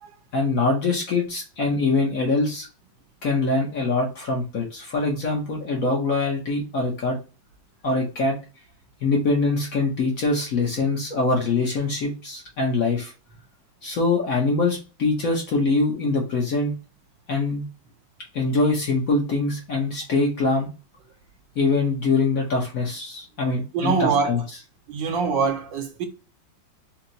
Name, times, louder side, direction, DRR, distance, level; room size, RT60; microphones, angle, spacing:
voice 1, 0.3-2.7 3.2-7.2 7.8-8.4 9.0-13.1 13.8-16.7 17.3-17.6 18.3-20.7 21.6-24.4, left 3 dB, 50° left, 1.2 m, -23 dB
voice 2, 23.7-24.4 24.9-26.1, right 5 dB, 75° right, 1.3 m, -24 dB
4.5 x 2.2 x 3.9 m
omnidirectional pair, 2.2 m